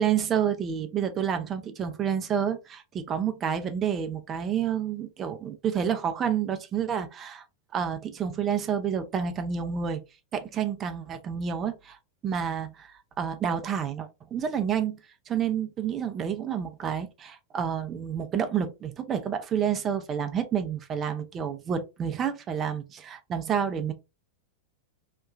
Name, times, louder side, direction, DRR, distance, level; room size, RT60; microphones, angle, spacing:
voice 1, 0.0-7.4 7.7-10.0 10.3-12.0 12.2-15.0 15.3-23.9, right 8 dB, 25° right, 0.5 m, -29 dB
2.9 x 2.3 x 2.3 m
figure-of-eight pair, 90°, 0 cm